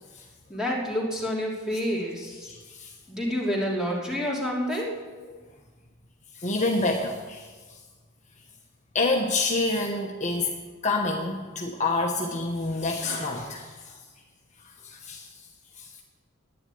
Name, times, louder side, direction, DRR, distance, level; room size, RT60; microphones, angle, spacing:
voice 1, 0.5-2.5 3.1-5.0, equal, 5° right, -4 dB, 3.0 m, -28 dB
voice 2, 2.5-2.9 6.3-7.5 8.9-14.0 14.8-15.3 15.8-16.0, left 2 dB, 35° left, 1 dB, 1.1 m, -28 dB
11.0 x 9.6 x 9.3 m, 1.4 s
head